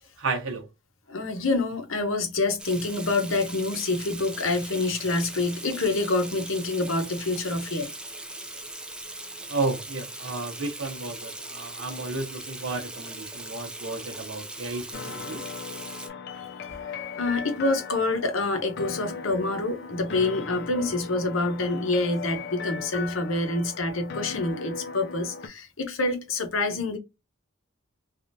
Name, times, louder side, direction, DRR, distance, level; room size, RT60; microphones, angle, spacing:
voice 1, 0.2-0.7 9.5-15.4, right 3 dB, 75° right, 0.9 m, -32 dB
voice 2, 1.1-7.9 16.8-27.0, left 2 dB, 75° left, 0.9 m, -27 dB
Water tap faucet / Sink (filling or washing), 2.6-16.1, right 2 dB, 5° right, 0.4 m, -40 dB
sound 1, 14.9-25.5, left 5 dB, 55° left, 0.5 m, -38 dB
3.4 x 2.4 x 2.6 m
head